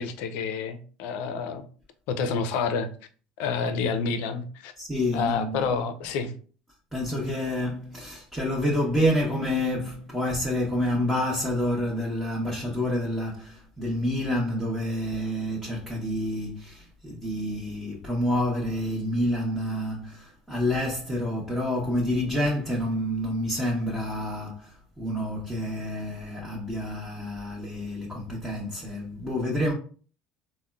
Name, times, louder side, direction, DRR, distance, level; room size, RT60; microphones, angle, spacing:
voice 1, 0.0-1.7 2.1-2.9 3.4-4.7 5.1-6.3, left 5 dB, 75° left, 0.4 m, -28 dB
voice 2, 4.8-5.6 6.9-29.7, left 1 dB, 5° right, 0.9 m, -28 dB
3.5 x 2.0 x 2.3 m
supercardioid pair, 95°, 3 cm